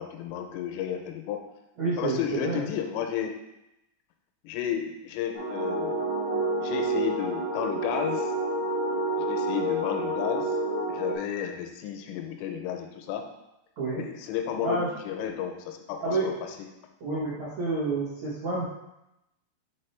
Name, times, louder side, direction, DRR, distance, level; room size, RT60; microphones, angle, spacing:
voice 1, 0.0-1.4 2.0-3.4 4.4-6.1 6.5-8.3 9.2-10.6 10.9-13.3 14.0-16.6 17.1-17.2, left 9 dB, 90° left, 4 dB, 3.2 m, -33 dB
voice 2, 1.8-2.6 13.8-14.0 14.6-14.9 16.0-16.3 17.0-18.6, right 3 dB, 80° right, -10 dB, 1.6 m, -29 dB
sound 1, 5.3-11.2, right 1 dB, 60° right, 1.9 m, -29 dB
7.2 x 4.2 x 3.3 m, 0.89 s
omnidirectional pair, 5.8 m